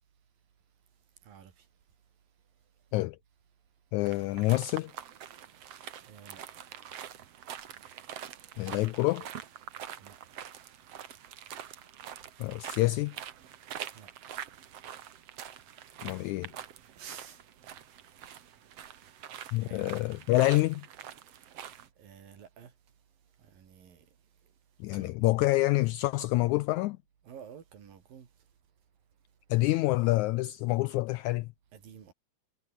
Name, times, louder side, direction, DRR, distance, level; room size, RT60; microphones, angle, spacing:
voice 1, 3.9-4.9 8.6-9.3 12.4-13.2 16.0-16.5 19.5-20.9 24.8-27.0 29.5-31.5, left 19 dB, 85° left, 1.7 m, -27 dB
sound 1, 4.0-21.9, right 9 dB, 55° right, 2.3 m, -45 dB
voice 2, 6.1-6.4 10.0-10.2 13.9-14.1 17.0-17.4 19.0-19.1 19.6-20.0 20.3-20.5 22.0-22.7 23.4-24.0 24.9-25.1 27.2-28.3 31.7-32.1, right 8 dB, 90° right, 4.7 m, -50 dB
omnidirectional pair, 3.9 m